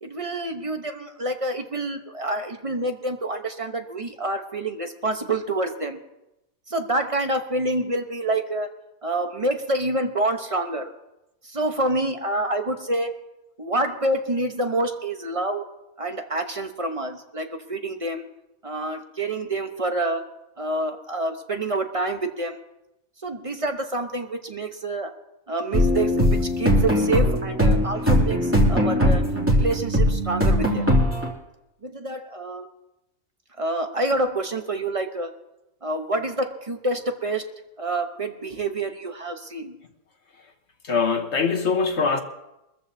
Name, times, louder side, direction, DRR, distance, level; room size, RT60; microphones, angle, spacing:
voice 1, 0.0-6.0 6.7-8.7 9.0-10.9 11.4-13.1 13.6-15.7 16.0-18.2 18.6-20.2 20.6-22.6 23.2-25.2 25.5-29.2 29.5-30.9 31.8-32.7 33.6-35.3 35.8-37.5 37.8-39.8, right 2 dB, 25° right, 0.9 m, -27 dB
sound 1, 25.7-31.3, equal, 10° right, 2.5 m, -20 dB
voice 2, 40.8-42.2, left 5 dB, 50° left, 1.4 m, -22 dB
23.0 x 14.0 x 2.8 m
omnidirectional pair, 1.5 m